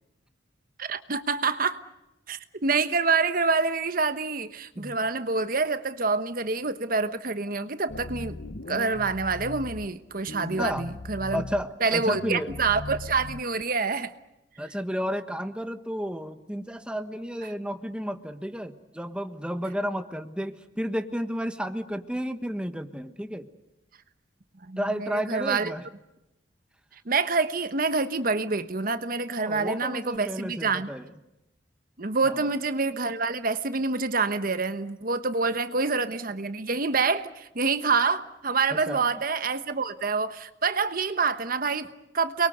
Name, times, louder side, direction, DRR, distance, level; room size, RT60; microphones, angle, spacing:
voice 1, 0.8-1.8 2.3-8.4 8.7-11.4 11.8-14.1 24.7-25.7 27.1-30.9 32.0-42.5, right 4 dB, 50° right, 11 dB, 1.2 m, -27 dB
sound 1, 7.9-9.9 10.3-11.6 12.0-13.6, left 2 dB, 60° left, 1.1 m, -38 dB
voice 2, 11.3-12.6 14.6-23.5 24.8-25.9 29.4-31.1 32.2-32.6 35.4-35.8 38.7-39.0, equal, 5° right, 8 dB, 1.3 m, -32 dB
30.0 x 22.5 x 8.0 m, 0.93 s
head